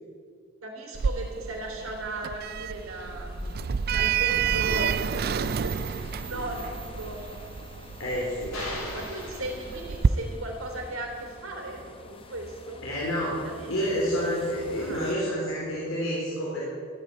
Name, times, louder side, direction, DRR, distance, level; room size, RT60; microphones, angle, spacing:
voice 1, 0.6-3.3 3.9-7.2 8.5-12.8 13.3-13.9 14.8-15.0, right 2 dB, 80° right, 1 dB, 3.5 m, -37 dB
Sliding door, 1.0-10.1, right 7 dB, 45° right, 0.3 m, -29 dB
sound 1, 2.6-15.1, left 1 dB, 25° left, 1.1 m, -44 dB
voice 2, 8.0-8.6 12.8-13.3 13.7-16.7, equal, 70° left, -5 dB, 3.5 m, -29 dB
sound 2, 8.5-10.3, left 2 dB, 90° left, 5.2 m, -39 dB
13.5 x 9.5 x 9.4 m, 2.3 s
head